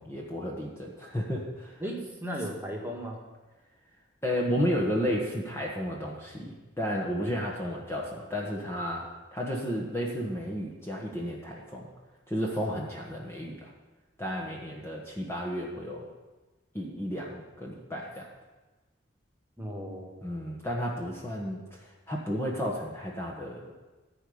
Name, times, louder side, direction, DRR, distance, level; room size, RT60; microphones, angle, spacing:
voice 1, 0.0-1.8 4.2-11.9 12.3-13.7 14.2-16.1 16.7-18.3 20.2-23.7, equal, 15° left, -3 dB, 1.3 m, -33 dB
voice 2, 1.8-3.2 19.6-20.2, equal, 10° right, -1 dB, 1.7 m, -36 dB
14.5 x 4.9 x 8.6 m, 1.2 s
head